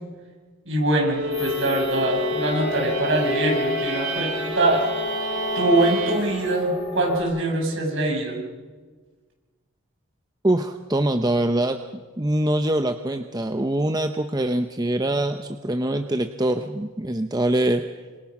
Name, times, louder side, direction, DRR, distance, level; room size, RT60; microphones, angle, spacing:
voice 1, 0.7-4.9 5.5-8.4, right 1 dB, 60° right, 0 dB, 6.6 m, -23 dB
sound 1, 1.0-6.7, left 1 dB, 85° right, 7.8 m, -29 dB
sound 2, 1.3-7.2, left 1 dB, 45° left, 7.5 m, -32 dB
voice 2, 10.4-11.8 12.2-17.8, right 1 dB, 20° right, 7 dB, 0.7 m, -23 dB
28.0 x 26.0 x 6.0 m, 1.4 s
head